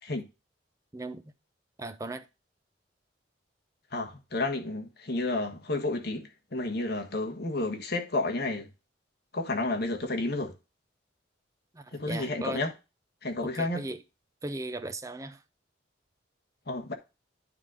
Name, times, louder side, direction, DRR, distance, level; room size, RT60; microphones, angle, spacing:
voice 1, 0.9-1.3 1.8-2.3 11.7-12.6 13.4-14.0 14.4-15.4, right 2 dB, 15° right, 0.6 m, -37 dB
voice 2, 3.9-8.7 9.3-10.5 11.9-12.7 13.2-13.9 16.7-16.9, left 2 dB, 55° left, 1.4 m, -31 dB
9.4 x 3.9 x 4.9 m
head